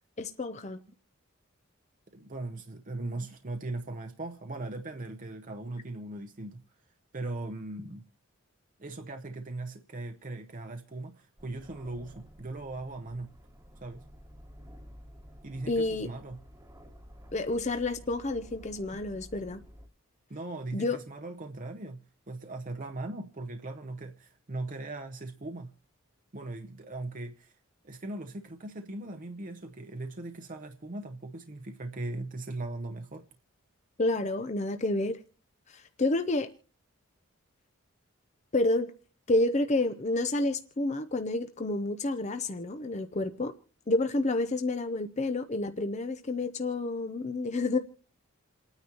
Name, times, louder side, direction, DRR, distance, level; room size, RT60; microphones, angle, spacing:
voice 1, 0.2-0.8 15.7-16.1 17.3-19.6 20.7-21.0 34.0-35.2 35.7-36.5 38.5-38.9 39.3-43.5 43.9-47.8, left 2 dB, 30° left, 0.6 m, -29 dB
voice 2, 2.1-6.6 7.1-8.0 8.8-13.3 13.8-14.0 15.4-16.4 20.3-22.0 22.3-25.7 26.3-27.5 27.8-33.3, right 2 dB, 35° right, 0.7 m, -39 dB
Aircraft, 11.4-19.9, equal, 15° right, 1.2 m, -51 dB
28.5 x 9.6 x 2.9 m
head